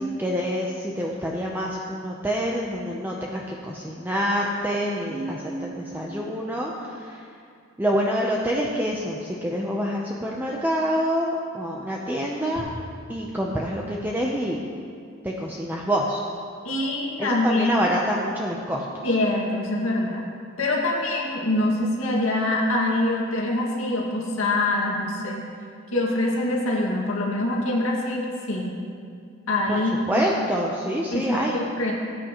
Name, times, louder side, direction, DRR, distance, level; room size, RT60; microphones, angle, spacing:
voice 1, 0.0-7.2 7.8-12.6 13.1-14.6 15.2-16.2 17.2-18.8 29.7-29.8 30.1-31.6, equal, 10° right, -3 dB, 0.7 m, -27 dB
voice 2, 5.1-6.2 16.6-17.9 19.0-20.3 20.6-25.5 25.9-28.8 29.5-30.1 31.1-31.9, left 1 dB, 80° left, -3 dB, 2.1 m, -25 dB
18.5 x 8.8 x 3.1 m, 2.3 s
head